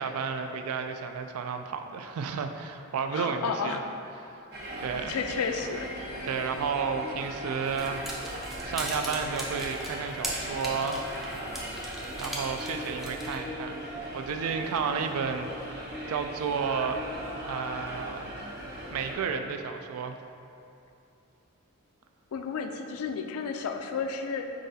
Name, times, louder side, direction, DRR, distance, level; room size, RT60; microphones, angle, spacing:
voice 1, 0.0-3.8 4.2-4.4 4.8-5.2 6.2-8.3 8.6-11.1 12.2-13.8 14.1-15.5 16.1-17.0 17.4-18.3 18.9-20.2, right 5 dB, 80° right, 6 dB, 0.3 m, -32 dB
voice 2, 3.0-3.8 4.6-6.0 14.8-15.1 22.3-24.5, left 5 dB, 80° left, 6 dB, 0.3 m, -33 dB
sound 1, 4.5-19.2, right 1 dB, 45° right, 0.8 m, -38 dB
sound 2, 7.6-13.4, equal, ahead, 0.3 m, -39 dB
4.7 x 3.8 x 2.7 m, 2.7 s
head